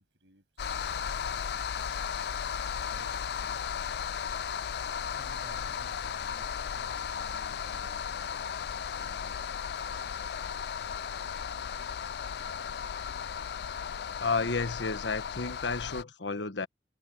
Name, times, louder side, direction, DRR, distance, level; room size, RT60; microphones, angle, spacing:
voice 1, 0.0-2.2 2.7-4.4 5.1-8.6 9.0-10.4 12.5-12.9, right 1 dB, 80° right, 7.7 m, -57 dB
sound 1, 0.6-16.0, left 7 dB, 65° left, 0.4 m, -35 dB
voice 2, 14.2-16.7, left 4 dB, 85° left, 1.3 m, -31 dB
head